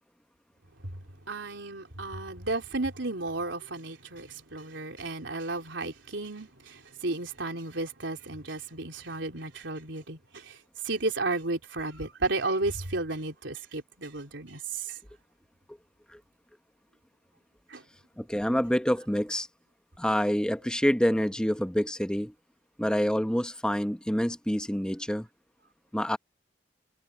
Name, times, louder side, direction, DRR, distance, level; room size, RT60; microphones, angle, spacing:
voice 1, 1.3-10.6 10.8-15.0 17.7-17.8, right 2 dB, 85° right, 3.7 m, -33 dB
voice 2, 18.2-19.5 20.0-22.3 22.8-25.3 25.9-26.2, equal, 5° left, 1.0 m, -27 dB
head